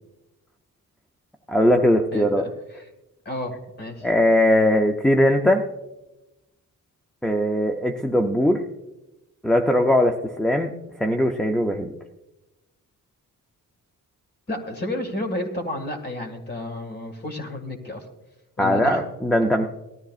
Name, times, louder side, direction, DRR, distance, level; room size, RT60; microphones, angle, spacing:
voice 1, 1.5-2.5 4.0-5.6 7.2-8.6 9.4-11.9 18.6-19.7, left 1 dB, ahead, 4 dB, 0.4 m, -20 dB
voice 2, 2.1-2.5 2.7-2.8 3.3-4.1 14.5-18.0 18.6-19.0, left 1 dB, 30° left, 5 dB, 1.8 m, -31 dB
18.0 x 13.0 x 2.4 m, 0.99 s
wide cardioid pair, 165°, 35 cm